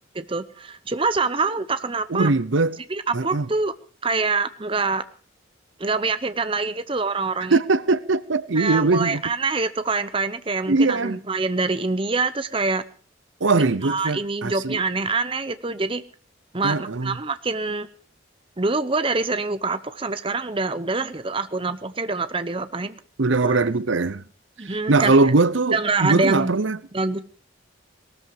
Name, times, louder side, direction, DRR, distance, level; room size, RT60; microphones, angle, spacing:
voice 1, 0.2-2.3 2.9-3.7 4.0-5.0 5.8-7.6 8.6-12.8 13.8-16.0 16.5-17.9 18.6-23.0 23.4-23.6 24.6-25.1 25.7-26.5 26.9-27.2, right 3 dB, 25° right, 0.8 m, -25 dB
voice 2, 2.1-2.8 3.1-3.5 7.5-9.2 10.7-11.2 13.4-14.8 16.6-17.2 23.2-24.2 24.6-26.8, right 3 dB, 70° right, 0.8 m, -21 dB
19.0 x 13.5 x 4.9 m
head